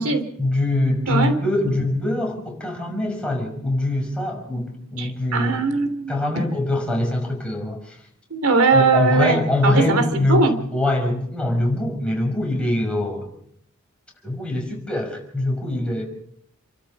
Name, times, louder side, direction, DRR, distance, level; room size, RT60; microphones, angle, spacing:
voice 1, 0.4-5.6 6.1-8.0 8.7-13.3 14.2-16.0, left 1 dB, 5° left, 0 dB, 5.9 m, -23 dB
voice 2, 5.0-6.1 8.3-10.5, right 4 dB, 90° right, 9 dB, 3.2 m, -20 dB
30.0 x 13.0 x 7.0 m, 0.70 s
head